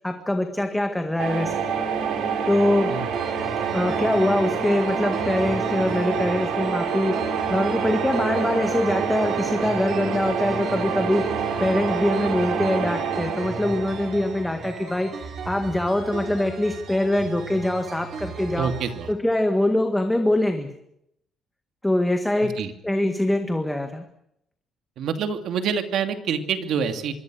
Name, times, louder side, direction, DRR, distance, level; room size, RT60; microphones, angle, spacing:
voice 1, 0.0-1.5 2.5-2.9 3.7-7.2 7.5-18.7 19.1-20.7 21.8-22.5 22.8-24.0, left 1 dB, 5° left, 6 dB, 1.7 m, -23 dB
sound 1, 1.2-15.0, right 6 dB, 90° right, 5.6 m, -27 dB
sound 2, 3.1-19.1, right 5 dB, 45° right, 4.0 m, -37 dB
voice 2, 18.6-19.1 22.6-22.7 25.0-27.1, right 7 dB, 65° right, 7 dB, 2.7 m, -26 dB
25.5 x 23.5 x 6.4 m, 0.77 s
cardioid pair, 170°, 0 cm